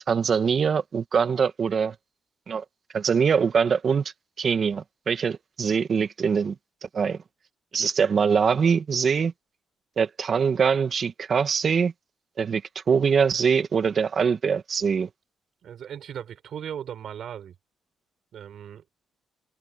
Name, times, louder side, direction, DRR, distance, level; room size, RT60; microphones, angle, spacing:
voice 1, 0.1-1.9 2.5-2.6 2.9-4.1 4.4-6.5 6.9-7.2 7.7-9.3 10.0-11.9 12.4-12.6 12.9-15.1, right 6 dB, 45° right, 2.0 m, -23 dB
voice 2, 15.6-17.5 18.3-18.8, right 9 dB, 65° right, 5.8 m, -37 dB
cardioid pair, 90°, 0 cm